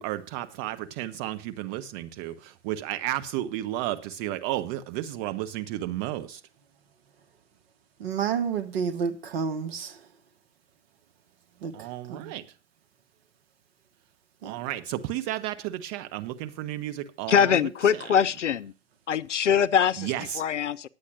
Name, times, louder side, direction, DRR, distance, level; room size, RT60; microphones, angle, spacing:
voice 1, 0.0-6.4 11.7-12.4 14.4-17.6 17.9-18.0 20.0-20.4, right 14 dB, 35° right, 1.2 m, -32 dB
voice 2, 8.0-10.0 11.6-12.3 14.4-14.6, right 6 dB, 55° right, 1.5 m, -30 dB
voice 3, 17.3-18.7 19.1-20.9, left 8 dB, 85° left, 0.6 m, -23 dB
10.0 x 8.5 x 6.2 m
figure-of-eight pair, 115°, 36 cm